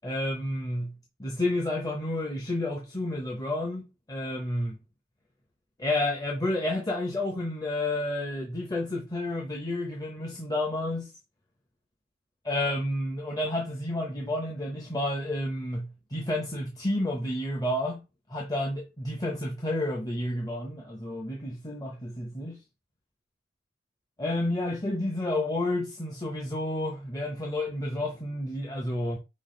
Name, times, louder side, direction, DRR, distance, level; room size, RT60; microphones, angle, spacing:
voice 1, 0.0-4.8 5.8-11.1 12.4-18.0 18.3-22.6 24.2-29.2, left 1 dB, 20° left, 0.8 m, -30 dB
5.4 x 2.4 x 3.8 m
head